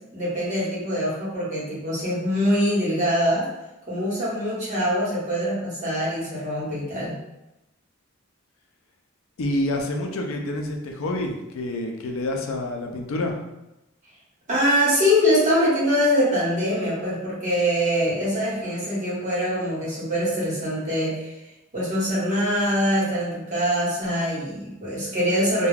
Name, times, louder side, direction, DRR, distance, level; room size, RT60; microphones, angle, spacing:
voice 1, 0.1-3.5 3.9-7.1 14.5-21.3 21.7-25.7, equal, 35° right, -8 dB, 1.1 m, -23 dB
voice 2, 9.4-13.4, left 1 dB, 80° left, 2 dB, 0.4 m, -28 dB
2.3 x 2.2 x 3.2 m, 0.94 s
head